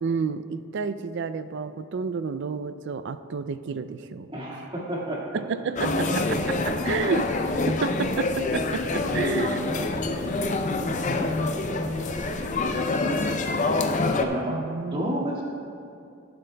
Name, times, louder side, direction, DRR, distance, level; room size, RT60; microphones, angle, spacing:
voice 1, 0.0-4.3 5.3-7.4 7.7-9.6 14.5-15.2, right 5 dB, 55° right, 12 dB, 0.4 m, -30 dB
voice 2, 4.3-5.4 10.7-12.5 14.2-14.6 14.9-15.4, right 1 dB, 25° right, -4 dB, 1.8 m, -32 dB
sound 1, 5.8-14.2, left 3 dB, 35° left, 0.5 m, -26 dB
sound 2, 6.1-12.7, left 1 dB, 60° left, 1.9 m, -39 dB
20.5 x 7.9 x 2.2 m, 2.5 s
head